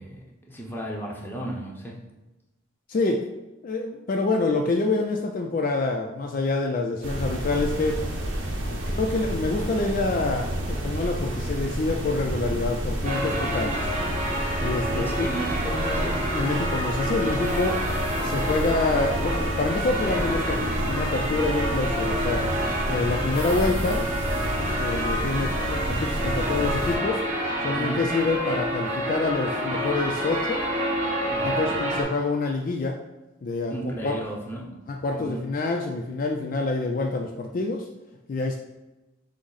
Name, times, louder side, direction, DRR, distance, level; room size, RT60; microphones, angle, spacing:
voice 1, 0.0-2.0 14.9-16.2 27.7-28.1 31.3-31.8 33.7-34.9 35.1-35.5, right 1 dB, 10° left, -2 dB, 0.6 m, -34 dB
voice 2, 2.9-3.2 3.6-8.0 8.7-13.8 14.6-15.3 16.3-17.8 18.2-22.4 22.9-24.0 24.6-27.2 27.6-30.6 31.4-33.0 33.4-34.1 34.9-37.9 38.3-38.6, left 3 dB, 45° left, 2 dB, 0.3 m, -27 dB
sound 1, 7.0-27.0, right 1 dB, 75° right, 0.8 m, -30 dB
sound 2, 13.0-32.0, equal, 35° right, 1.1 m, -28 dB
6.1 x 2.0 x 3.9 m, 1.0 s
head